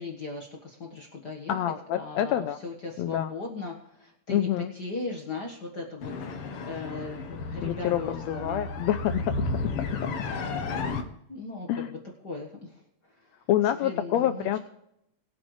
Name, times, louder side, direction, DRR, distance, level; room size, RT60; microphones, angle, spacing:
voice 1, 0.0-1.6 1.9-8.6 11.3-13.5 13.7-14.6, left 3 dB, 40° left, 0 dB, 1.7 m, -38 dB
voice 2, 1.5-2.6 3.0-3.3 4.3-4.7 7.6-9.3 10.0-10.1 11.7-11.9 13.5-14.6, left 11 dB, 80° left, 10 dB, 1.7 m, -27 dB
sound 1, 6.0-11.0, left 3 dB, 60° left, 1.9 m, -33 dB
22.0 x 8.1 x 3.2 m, 0.78 s
omnidirectional pair, 3.3 m